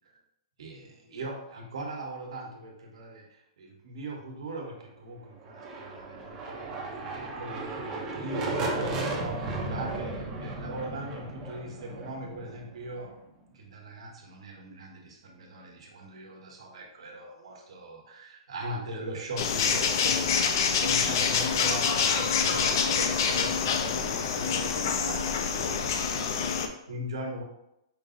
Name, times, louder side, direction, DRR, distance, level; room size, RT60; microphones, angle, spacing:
voice 1, 0.6-13.1 13.5-27.4, right 1 dB, 80° right, 0 dB, 1.1 m, -40 dB
sound 1, 5.4-13.2, right 2 dB, 15° right, 0.5 m, -35 dB
sound 2, 19.4-26.7, left 6 dB, 45° left, 0.4 m, -26 dB
5.2 x 2.0 x 3.7 m, 0.82 s
hypercardioid pair, 175°, 3 cm